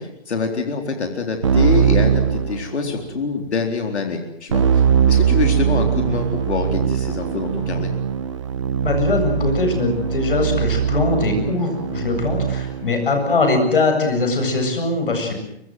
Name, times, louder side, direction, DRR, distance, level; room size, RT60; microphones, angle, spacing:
voice 1, 0.0-7.9, left 4 dB, 85° left, 3 dB, 4.2 m, -25 dB
Keyboard (musical), 1.4-3.1 4.5-12.9, right 8 dB, 25° right, 1.4 m, -21 dB
voice 2, 8.8-15.5, left 3 dB, 55° left, 5 dB, 7.9 m, -21 dB
23.5 x 23.0 x 7.8 m, 0.80 s
hypercardioid pair, 180°, 33 cm